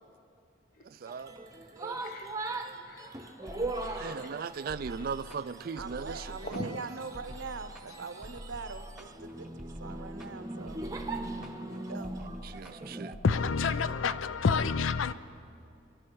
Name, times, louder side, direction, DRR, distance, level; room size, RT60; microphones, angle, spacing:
sound 1, 0.7-0.9 1.4-1.5 1.8-8.1, left 2 dB, 45° left, 0.9 m, -47 dB
voice 1, 0.8-1.3 1.7-2.0 4.0-6.8 12.4-13.2, right 5 dB, 50° right, 0.3 m, -38 dB
sound 2, 1.1-13.1, right 2 dB, 20° right, 0.8 m, -40 dB
sound 3, 3.5-13.3, equal, 5° right, 1.1 m, -47 dB
voice 2, 3.7-4.4 4.9-5.0 5.7-10.8 11.7-12.2, right 4 dB, 75° right, 0.7 m, -43 dB
voice 3, 13.2-15.1, left 5 dB, 85° left, 0.5 m, -27 dB
24.0 x 12.0 x 4.6 m
head